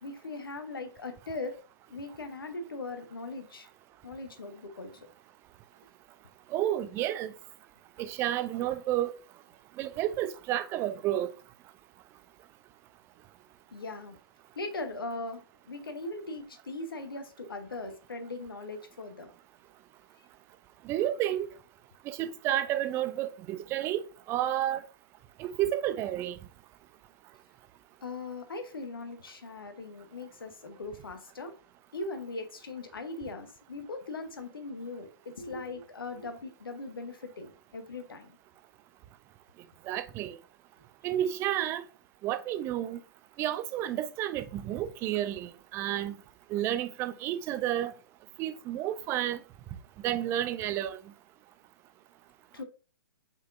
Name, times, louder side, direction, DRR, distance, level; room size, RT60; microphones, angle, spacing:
voice 1, 0.0-1.6 1.9-3.7 4.0-4.9 13.7-14.2 14.5-19.3 28.0-31.5 31.9-38.4 52.5-52.6, left 2 dB, 75° left, 0.9 m, -39 dB
voice 2, 6.5-7.3 8.0-9.1 9.8-11.3 20.9-21.5 22.1-24.0 24.3-24.8 25.4-26.4 39.9-40.4 41.0-41.8 42.2-43.0 43.4-46.1 46.5-47.9 48.4-49.4 50.0-51.0, right 12 dB, 20° right, 0.3 m, -31 dB
5.1 x 3.9 x 2.5 m
figure-of-eight pair, 120°, 12 cm